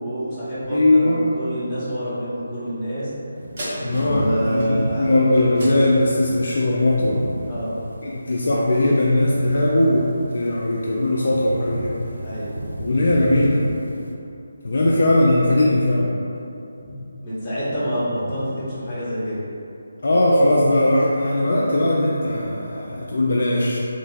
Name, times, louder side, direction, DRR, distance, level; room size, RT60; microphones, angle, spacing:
voice 1, 0.0-3.1 3.8-5.3 7.5-7.8 12.2-12.6 17.2-19.4, equal, 15° left, -13 dB, 1.0 m, -27 dB
voice 2, 0.7-1.2 3.8-7.2 8.0-12.0 12.8-13.7 14.6-16.1 20.0-23.8, left 1 dB, 55° left, -5 dB, 0.3 m, -19 dB
sound 1, 3.3-14.1, right 1 dB, 65° right, 0.3 m, -34 dB
sound 2, 3.6-8.3 8.8-8.9, equal, 45° right, 0.9 m, -37 dB
3.1 x 2.7 x 2.6 m, 2.7 s
figure-of-eight pair, 150°, 0 cm